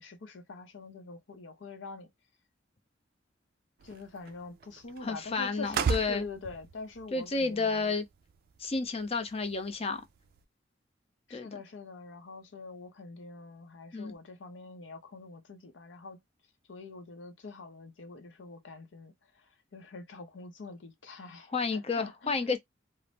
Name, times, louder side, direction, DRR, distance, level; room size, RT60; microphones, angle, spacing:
voice 1, 0.0-2.1 3.8-7.9 11.3-16.2 16.7-22.3, left 3 dB, 80° left, 0.6 m, -45 dB
sound 1, 3.8-10.5, right 6 dB, 55° right, 0.3 m, -39 dB
voice 2, 5.0-6.2 7.1-8.0 8.6-10.0 11.3-11.5 13.9-14.1 21.5-22.6, left 4 dB, 35° left, 0.5 m, -31 dB
2.6 x 2.0 x 3.3 m
head